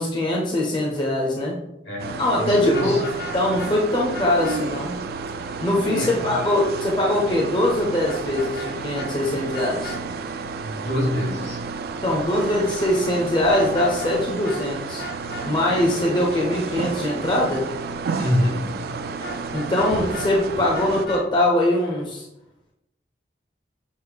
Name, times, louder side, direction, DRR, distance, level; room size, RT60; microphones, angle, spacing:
voice 1, 0.0-1.6 2.2-3.0 3.3-5.0 5.6-10.0 12.0-15.0 15.4-17.6 19.5-22.2, left 1 dB, 25° left, -2 dB, 0.6 m, -22 dB
voice 2, 1.8-3.0 5.8-6.2 10.6-11.6 18.2-18.9, equal, 80° left, -2 dB, 1.6 m, -25 dB
sound 1, 2.0-21.1, right 4 dB, 55° right, 0.3 m, -31 dB
Vehicle horn car horn honking, 2.7-3.7 4.1-4.6 8.1-8.7 9.0-9.1 9.5-10.0 13.4-14.2 14.4-14.6 15.0-15.5 19.2-20.3 20.7-21.2, left 1 dB, 60° left, 0.9 m, -35 dB
6.3 x 2.1 x 3.4 m, 0.87 s
head